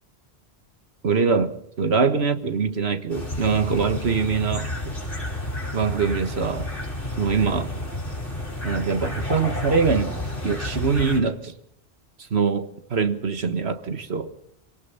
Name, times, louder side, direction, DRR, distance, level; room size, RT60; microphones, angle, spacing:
voice 1, 1.0-4.7 5.7-6.7 7.2-7.7 8.6-10.1 10.4-11.5 12.3-14.3, right 5 dB, 75° right, 1.8 m, -23 dB
sound 1, 3.1-11.2, left 1 dB, 55° left, 5.9 m, -31 dB
27.0 x 18.0 x 5.7 m
omnidirectional pair, 1.1 m